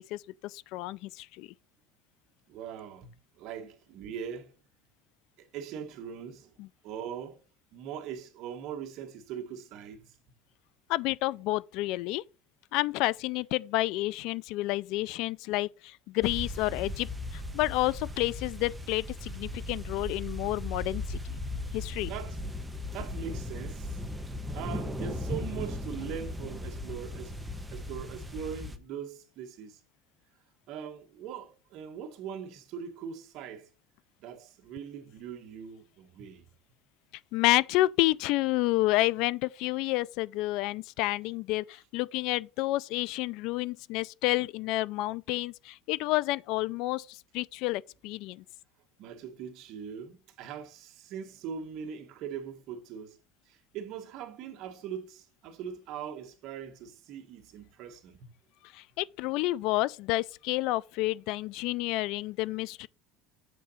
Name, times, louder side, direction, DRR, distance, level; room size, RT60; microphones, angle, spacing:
voice 1, 0.0-1.5 6.6-6.7 10.9-12.2 12.7-21.4 21.7-22.1 37.3-48.4 58.7-62.9, left 18 dB, 65° left, 0.3 m, -30 dB
voice 2, 2.5-4.5 5.4-6.5 6.8-7.4 7.7-10.2 21.5-21.6 22.1-22.4 22.9-24.0 24.5-27.4 27.7-29.8 30.7-33.7 34.2-36.5 49.0-53.2 53.5-58.3, right 8 dB, 55° right, 1.4 m, -41 dB
sound 1, 16.2-28.8, left 1 dB, 5° right, 0.8 m, -37 dB
7.4 x 3.9 x 5.6 m
cardioid pair, 140°, 0 cm